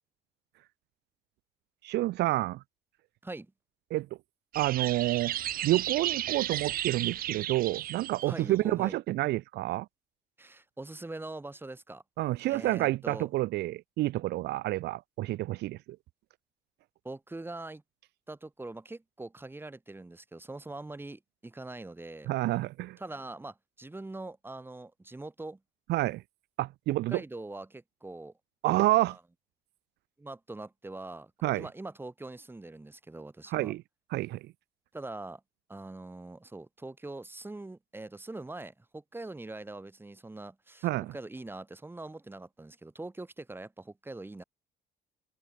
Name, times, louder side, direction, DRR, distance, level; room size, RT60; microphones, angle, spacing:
voice 1, 1.8-2.6 3.9-4.1 4.5-5.3 5.6-9.9 12.2-15.8 22.3-23.0 25.9-26.2 26.6-27.2 28.6-29.2 31.4-31.7 33.5-33.8 34.1-34.4 40.8-41.1, right 17 dB, 80° right, 2.5 m, -29 dB
sound 1, 4.5-8.3, right 12 dB, 60° right, 1.0 m, -34 dB
voice 2, 8.2-9.0 10.4-12.0 12.5-13.3 17.0-17.8 18.3-22.3 23.0-25.6 27.1-28.3 29.1-29.2 30.2-33.7 34.9-35.4 35.7-44.4, right 2 dB, 10° right, 7.4 m, -43 dB
cardioid pair, 110°, 17 cm